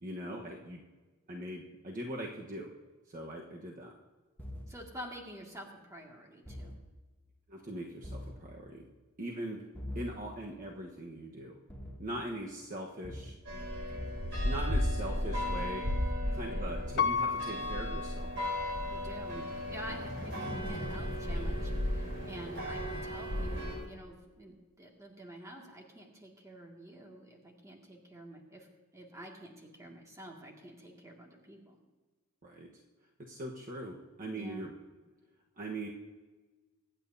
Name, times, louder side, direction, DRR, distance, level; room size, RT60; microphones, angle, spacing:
voice 1, 0.0-0.8 1.3-2.7 3.1-3.9 7.5-8.9 9.2-9.7 9.9-11.6 12.0-13.3 14.4-15.9 16.3-18.3 19.3-19.5 23.3-23.7 32.4-32.7 33.3-34.7 35.6-35.9, right 1 dB, 40° right, -1 dB, 1.2 m, -41 dB
sound 1, 4.4-4.7 6.5-6.8 8.0-8.4 9.7-10.1 11.7-12.0 13.0-13.3 13.9-14.2 15.3-15.5 16.8-16.9, left 1 dB, 10° left, 1.3 m, -42 dB
voice 2, 4.7-6.8 16.2-16.8 18.9-19.4 19.7-28.7 28.9-31.8 34.3-34.7, equal, 15° right, -1 dB, 2.1 m, -48 dB
sound 2, 13.5-23.8, left 1 dB, 55° right, 3.6 m, -34 dB
Piano, 17.0-19.0 19.5-19.6, left 6 dB, 50° left, 0.5 m, -34 dB
24.5 x 9.0 x 2.7 m, 1.3 s
head